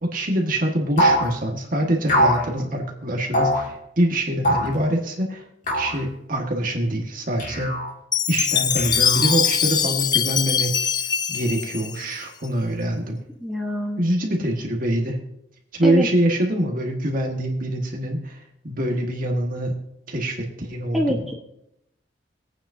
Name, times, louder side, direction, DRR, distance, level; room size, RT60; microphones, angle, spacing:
voice 1, 0.0-5.4 5.7-7.7 8.3-10.9 11.3-13.2 14.0-15.2 15.7-19.7 20.1-21.2, right 1 dB, 50° right, 1 dB, 1.7 m, -24 dB
sound 1, 1.0-1.3 2.1-2.5 3.3-3.6 4.4-4.8 5.7-6.0 7.4-7.9 8.8-9.5, equal, 45° left, 2.5 m, -22 dB
Chime, 8.1-12.5, left 8 dB, 25° left, 0.3 m, -22 dB
voice 2, 13.4-14.0 15.8-16.1 20.9-21.3, equal, ahead, -2 dB, 1.2 m, -25 dB
20.5 x 9.0 x 2.8 m, 0.81 s
head